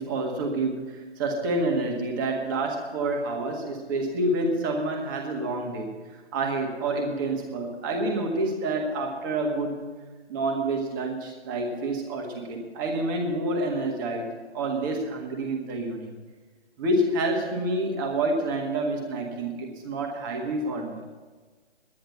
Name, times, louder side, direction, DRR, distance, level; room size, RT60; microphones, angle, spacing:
voice 1, 0.0-6.0 6.3-9.8 10.3-16.2 16.8-21.2, right 2 dB, 20° right, 2 dB, 1.6 m, -28 dB
10.5 x 10.5 x 8.1 m, 1.4 s
figure-of-eight pair, 155°, 34 cm